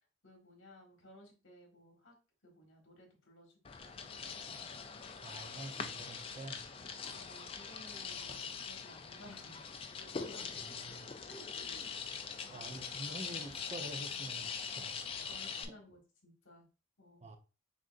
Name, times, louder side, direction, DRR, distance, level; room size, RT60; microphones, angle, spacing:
voice 1, 0.2-2.1 2.4-4.7 7.0-9.6 9.9-10.5 11.3-11.9 12.4-12.7 15.3-16.7 17.0-17.3, left 1 dB, 65° left, 1.5 m, -57 dB
sound 1, 3.6-15.6, left 6 dB, 25° left, 0.3 m, -43 dB
voice 2, 5.2-6.6 10.5-11.1 12.5-14.9 17.2-17.4, right 2 dB, 30° right, 0.6 m, -47 dB
6.3 x 2.6 x 2.4 m
head